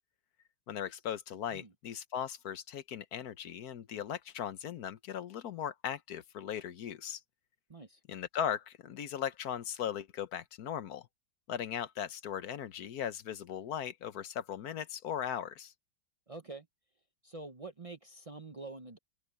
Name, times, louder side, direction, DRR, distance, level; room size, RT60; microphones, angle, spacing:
voice 1, 0.7-7.2 8.1-11.1 11.5-15.7, left 9 dB, 60° left, 1.3 m, -38 dB
voice 2, 7.7-8.0 16.3-16.7 17.2-19.0, right 3 dB, 60° right, 0.3 m, -46 dB
open air
omnidirectional pair, 2.1 m